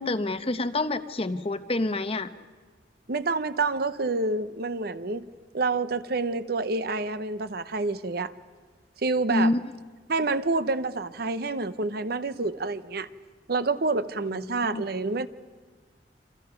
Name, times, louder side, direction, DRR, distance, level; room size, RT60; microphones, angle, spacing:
voice 1, 0.0-2.3 9.3-9.6 14.3-14.8, left 2 dB, 35° left, 0.9 m, -27 dB
voice 2, 3.1-5.3 5.5-8.3 9.0-9.5 10.1-13.1 13.5-15.3, right 3 dB, 60° right, 0.8 m, -28 dB
28.0 x 26.5 x 5.8 m
head